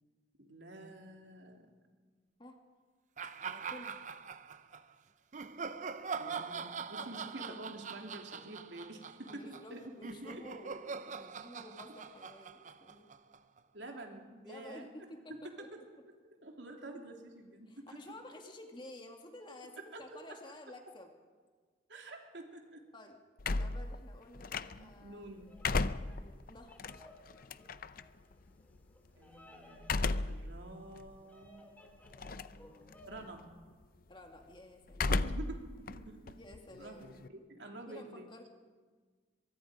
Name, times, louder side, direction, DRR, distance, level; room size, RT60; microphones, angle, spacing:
voice 1, 0.4-1.7 6.1-9.9 10.3-10.4 13.7-14.9 15.6-15.8 16.4-18.0 19.9-20.0 21.9-22.8 24.7-25.5 29.2-29.8 30.3-31.7 33.1-33.4 35.1-35.6 35.9-36.4 36.8-38.3, right 2 dB, 75° right, 2 dB, 3.1 m, -48 dB
sound 1, 3.2-4.8 5.3-13.6, right 5 dB, 40° right, 0.7 m, -43 dB
voice 2, 3.4-4.0 6.3-6.5 7.0-7.7 9.3-13.1 14.4-15.9 17.7-21.1 22.9-23.2 23.4-25.2 26.1-26.8 32.1-33.2 34.1-35.2 36.4-37.1 37.4-37.5 37.9-38.5, left 1 dB, 25° left, 3 dB, 2.3 m, -52 dB
sound 2, 23.4-25.0 25.4-28.0 29.8-30.5 31.0-31.1 32.1-32.6 32.9-33.4 34.9-35.6 35.9-37.3, left 3 dB, 50° left, 0.6 m, -34 dB
Bird vocalization bird call bird song, 25.3-33.3, left 1 dB, 10° left, 2.5 m, -60 dB
23.5 x 23.0 x 5.1 m, 1.5 s
head